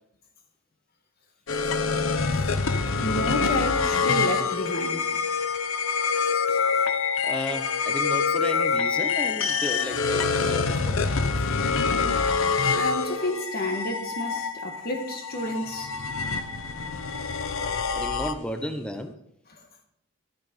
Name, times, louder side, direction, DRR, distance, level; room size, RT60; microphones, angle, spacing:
sound 1, 1.5-18.7, left 5 dB, 70° left, 0.8 m, -26 dB
voice 1, 2.7-5.1 12.7-15.9 19.5-19.6, left 1 dB, 45° left, 1.5 m, -31 dB
voice 2, 7.2-11.1 17.9-19.1, equal, 5° left, 0.6 m, -34 dB
13.5 x 6.7 x 5.2 m
head